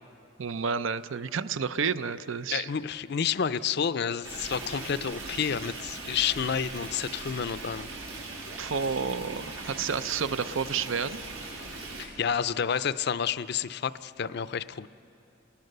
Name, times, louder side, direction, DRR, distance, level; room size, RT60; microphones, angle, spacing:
voice 1, 0.4-2.7 8.6-11.2, right 6 dB, 75° right, 13 dB, 0.6 m, -30 dB
voice 2, 2.5-7.9 12.0-14.9, left 7 dB, 55° left, 14 dB, 0.5 m, -30 dB
Stream, 4.2-12.0, right 2 dB, 90° right, 7.4 m, -40 dB
30.0 x 20.0 x 6.7 m, 2.8 s
head